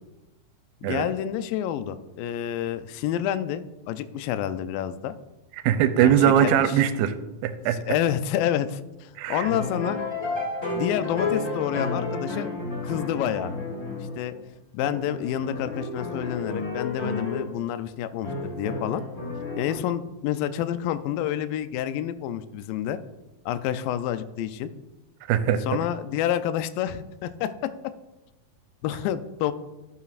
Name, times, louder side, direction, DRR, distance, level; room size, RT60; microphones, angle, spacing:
voice 1, 0.8-5.1 6.0-6.5 7.9-10.0 10.8-12.5 12.8-13.5 14.2-14.3 14.7-19.0 19.6-23.0 23.5-24.7 25.6-27.7 28.8-29.5, left 10 dB, 85° left, 12 dB, 2.0 m, -28 dB
voice 2, 5.6-7.1 7.4-7.8 9.2-9.5 25.3-25.6, right 10 dB, 85° right, 9 dB, 2.3 m, -21 dB
sound 1, 9.4-14.5 14.8-17.5 18.2-19.7, left 3 dB, 60° left, 0.6 m, -31 dB
13.5 x 7.0 x 2.5 m, 1.0 s
omnidirectional pair, 4.5 m